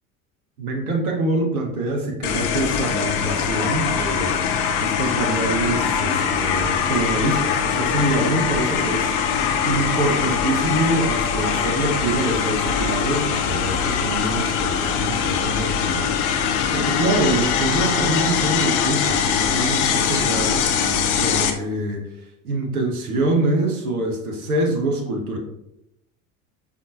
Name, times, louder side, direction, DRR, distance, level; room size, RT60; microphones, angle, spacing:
voice 1, 0.6-4.4 4.8-9.1 9.6-22.1 22.4-25.4, right 2 dB, 80° right, 1 dB, 0.8 m, -25 dB
sound 1, 2.2-21.5, left 7 dB, 45° left, 0.6 m, -22 dB
5.2 x 2.4 x 2.6 m, 0.82 s
figure-of-eight pair, 70°, 43 cm